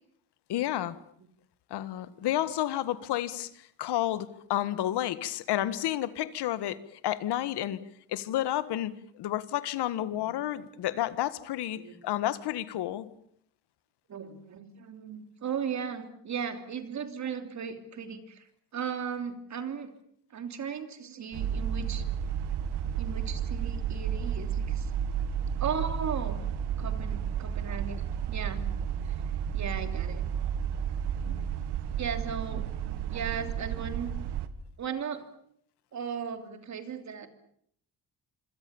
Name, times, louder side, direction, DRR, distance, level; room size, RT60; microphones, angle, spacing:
voice 1, 0.5-1.0 1.7-6.8 7.0-7.8 8.1-13.1 31.3-31.5, left 13 dB, 80° left, 14 dB, 1.7 m, -31 dB
voice 2, 14.1-18.5 18.7-19.9 20.3-22.0 23.0-24.9 25.6-26.4 26.8-28.7 29.1-29.2 29.5-30.3 32.0-34.2 34.8-35.3 35.9-37.3, right 7 dB, 45° right, 8 dB, 3.1 m, -36 dB
sound 1, 21.3-34.5, right 8 dB, 80° right, 2.0 m, -32 dB
26.0 x 26.0 x 7.1 m, 0.67 s
cardioid pair, 150°, 40 cm